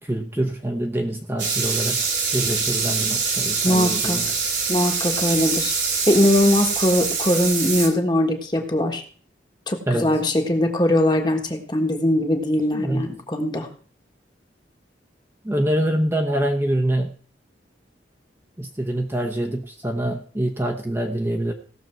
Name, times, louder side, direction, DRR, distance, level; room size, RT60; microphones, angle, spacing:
voice 1, 0.0-2.1 2.3-4.3 9.9-10.1 12.7-13.1 15.4-17.1 18.6-21.5, right 1 dB, 15° right, 3 dB, 0.9 m, -25 dB
sound 1, 1.4-7.9, right 5 dB, 80° right, 2.8 m, -24 dB
voice 2, 3.6-4.2 4.7-5.7 6.1-9.0 9.7-13.7, left 1 dB, 25° left, 4 dB, 1.4 m, -21 dB
17.0 x 6.8 x 4.5 m, 0.43 s
head